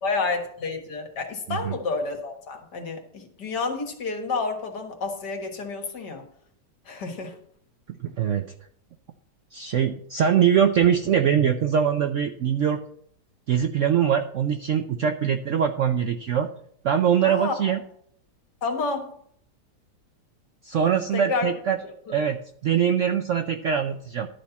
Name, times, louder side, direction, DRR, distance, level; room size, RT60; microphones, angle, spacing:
voice 1, 0.0-6.2 6.9-7.4 17.2-17.6 18.6-19.1 21.1-21.5 21.8-22.1, left 4 dB, 70° left, 3 dB, 2.1 m, -30 dB
voice 2, 7.9-8.5 9.5-12.8 13.5-16.5 16.8-17.8 20.6-21.8 22.1-22.4 22.6-24.3, right 8 dB, 70° right, 6 dB, 0.7 m, -22 dB
11.5 x 4.3 x 7.0 m, 0.66 s
omnidirectional pair, 1.9 m